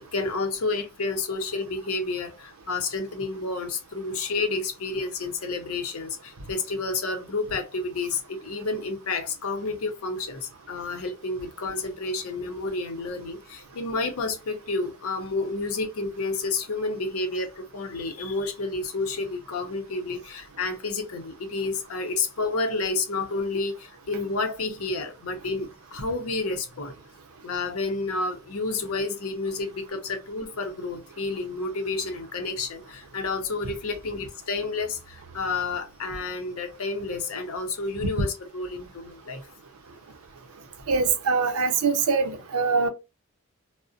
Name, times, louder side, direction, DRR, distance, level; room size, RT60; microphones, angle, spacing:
voice 1, 0.1-26.9 27.4-39.5, left 3 dB, 70° left, 0.6 m, -30 dB
voice 2, 40.9-42.9, right 4 dB, 75° right, 0.5 m, -23 dB
2.4 x 2.0 x 2.5 m
head